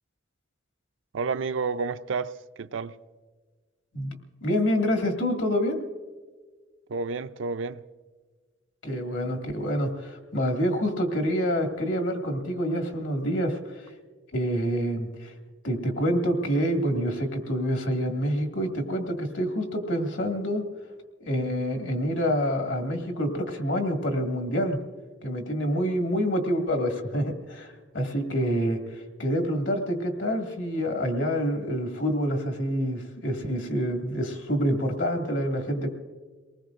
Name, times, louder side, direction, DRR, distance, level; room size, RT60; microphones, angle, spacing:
voice 1, 1.1-3.0 6.9-7.8, right 4 dB, 85° right, 0.5 m, -30 dB
voice 2, 4.4-5.9 8.8-13.9 14.3-15.3 15.6-20.6 21.3-24.8 25.2-35.9, equal, 80° left, 2.0 m, -27 dB
28.0 x 19.5 x 2.5 m
head